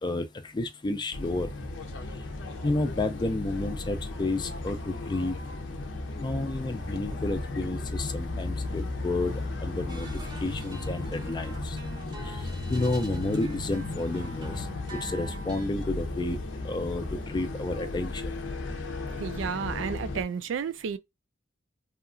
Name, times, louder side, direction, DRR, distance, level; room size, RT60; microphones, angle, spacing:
voice 1, 0.0-1.5 2.6-5.3 6.2-10.1 10.4-11.8 12.3-12.4 12.7-16.4 16.6-18.4, left 2 dB, 25° left, 0.4 m, -31 dB
sound 1, 1.1-20.2, left 2 dB, 75° left, 0.6 m, -35 dB
sound 2, 9.9-15.7, right 1 dB, 25° right, 0.6 m, -45 dB
voice 2, 19.2-21.0, right 6 dB, 80° right, 0.4 m, -32 dB
2.8 x 2.4 x 2.4 m
head